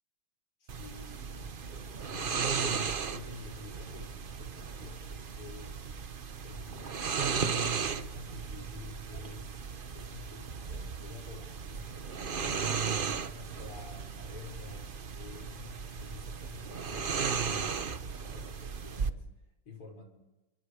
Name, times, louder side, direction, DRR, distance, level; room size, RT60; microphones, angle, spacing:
voice 1, 0.6-5.8 6.4-9.6 9.9-12.6 13.1-20.0, left 4 dB, 85° left, 3 dB, 6.6 m, -50 dB
sound 1, 0.7-19.1, right 6 dB, 85° right, 0.4 m, -36 dB
29.5 x 27.0 x 5.0 m, 1.0 s
omnidirectional pair, 2.4 m